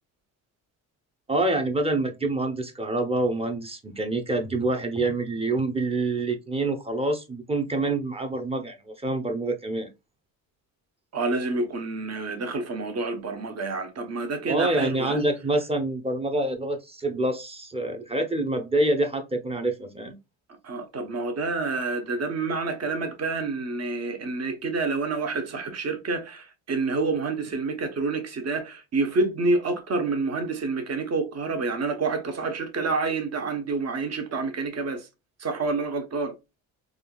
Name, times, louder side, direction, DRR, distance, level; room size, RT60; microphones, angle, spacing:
voice 1, 1.3-9.9 14.5-20.2, right 2 dB, 15° right, 0.8 m, -26 dB
voice 2, 11.1-15.2 20.6-35.1 35.4-36.3, right 3 dB, 40° right, 1.0 m, -28 dB
3.6 x 2.4 x 2.3 m
supercardioid pair, 60°, 41 cm